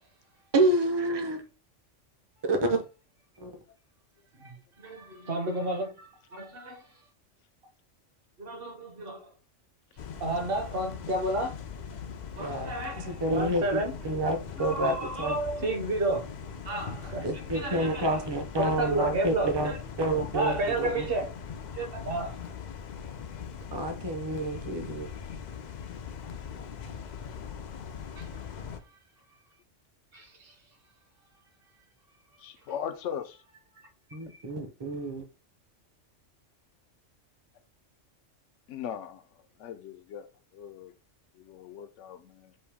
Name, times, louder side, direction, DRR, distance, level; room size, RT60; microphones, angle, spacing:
voice 1, 0.5-1.4 2.5-2.8 3.4-3.5 12.4-12.7 13.0-15.3 17.2-21.1 23.7-25.1 34.1-35.2, right 1 dB, 25° right, 0.7 m, -28 dB
voice 2, 4.4-6.8 8.4-9.3 10.2-11.6 12.4-14.0 14.6-16.3 16.6-18.2 18.6-19.8 20.2-21.3 21.8-22.3 28.2-28.3 30.1-30.5, right 2 dB, 50° right, 1.3 m, -31 dB
sound 1, 10.0-28.8, left 7 dB, 55° left, 0.5 m, -41 dB
voice 3, 32.4-33.4 38.7-40.3 40.5-40.9 41.3-42.5, left 8 dB, 75° left, 0.9 m, -39 dB
5.5 x 2.6 x 3.4 m
omnidirectional pair, 1.3 m